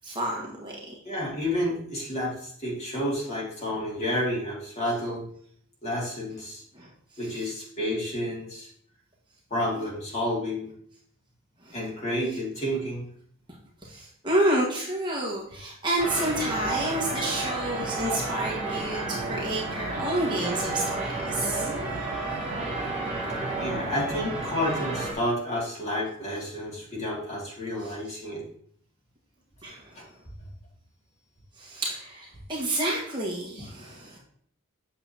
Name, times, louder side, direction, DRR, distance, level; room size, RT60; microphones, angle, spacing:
voice 1, 0.0-0.7 6.7-6.9 11.7-11.8 13.8-20.8 21.2-21.7 29.6-30.0 31.6-34.2, right 1 dB, 20° right, -3 dB, 1.5 m, -29 dB
voice 2, 1.0-5.2 5.8-6.6 7.2-8.7 9.5-10.7 11.7-13.0 22.9-23.0 23.6-28.4 30.0-30.1, left 1 dB, 30° left, -4 dB, 2.3 m, -30 dB
sound 1, 16.0-25.1, right 2 dB, 5° right, 2.8 m, -31 dB
8.3 x 6.7 x 2.9 m, 0.64 s
head